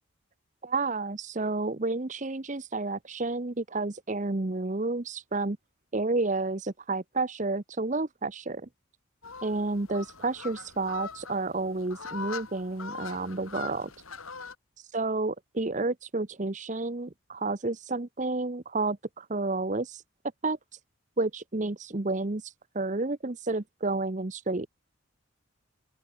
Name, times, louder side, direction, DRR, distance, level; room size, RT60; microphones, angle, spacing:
voice 1, 0.6-5.6 5.9-8.7 9.4-13.9 14.9-20.0 20.4-20.8 21.2-24.7, right 3 dB, 35° right, 0.9 m, -30 dB
sound 1, 9.2-14.6, left 5 dB, 90° left, 5.8 m, -42 dB
open air
head